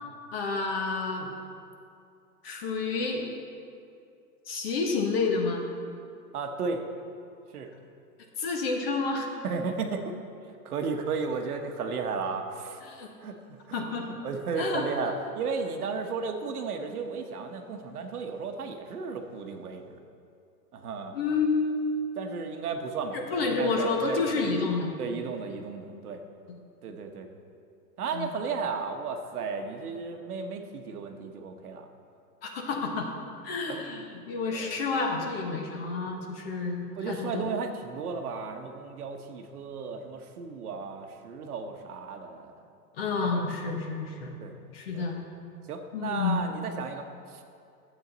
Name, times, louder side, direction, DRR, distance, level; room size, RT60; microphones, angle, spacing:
voice 1, 0.3-1.3 2.4-3.3 4.5-5.6 8.4-9.3 12.8-13.1 13.7-14.0 14.6-14.8 21.1-21.9 23.1-24.9 28.1-28.3 32.4-33.1 33.4-37.5 43.0-44.3 44.7-45.2 45.9-46.4, left 4 dB, 35° left, 2 dB, 1.2 m, -29 dB
voice 2, 6.3-6.8 7.5-7.7 9.4-10.1 10.6-12.8 13.2-13.8 14.2-20.0 20.7-21.1 22.2-24.5 25.0-26.2 26.8-27.3 28.0-31.9 33.7-33.9 34.5-34.7 37.0-42.6 43.2-43.3 44.4-44.5 44.9-45.1 45.7-47.4, right 5 dB, 65° right, 5 dB, 1.1 m, -34 dB
12.5 x 8.0 x 4.0 m, 2.5 s
hypercardioid pair, 160°, 49 cm